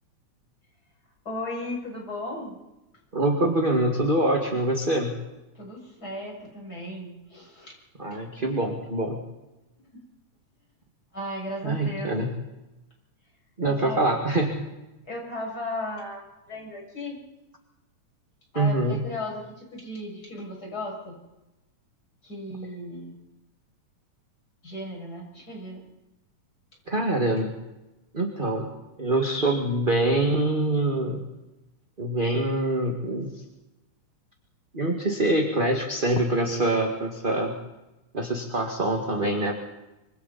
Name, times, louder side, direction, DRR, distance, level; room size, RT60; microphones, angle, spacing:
voice 1, 1.3-2.6 5.5-7.7 8.1-8.2 9.8-10.0 11.1-12.2 13.6-14.2 15.1-17.2 18.5-21.2 22.2-23.1 24.6-25.8, left 1 dB, 30° left, -2 dB, 7.5 m, -36 dB
voice 2, 3.1-5.2 8.0-9.2 11.6-12.3 13.6-14.5 18.5-19.0 26.9-27.5 28.1-28.7 29.0-31.3 32.0-33.4 34.7-37.6 38.1-39.5, right 1 dB, 20° right, 2 dB, 1.7 m, -25 dB
26.0 x 25.0 x 4.3 m, 0.99 s
omnidirectional pair, 3.5 m